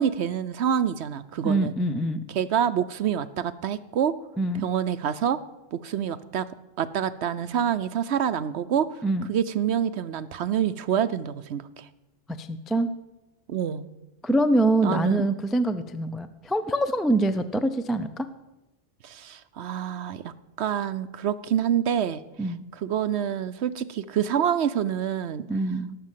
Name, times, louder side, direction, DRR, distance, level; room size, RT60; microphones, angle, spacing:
voice 1, 0.0-1.7 2.3-4.1 4.6-5.4 5.7-6.5 6.8-9.0 9.3-11.9 13.5-13.8 14.8-15.3 19.0-22.2 22.8-25.5, right 9 dB, 65° right, 14 dB, 0.9 m, -27 dB
voice 2, 1.4-2.2 4.4-4.7 9.0-9.3 12.4-12.9 14.2-18.3 22.4-22.6 25.5-26.0, right 1 dB, ahead, 10 dB, 0.4 m, -24 dB
18.5 x 7.7 x 7.5 m, 0.98 s
omnidirectional pair, 1.3 m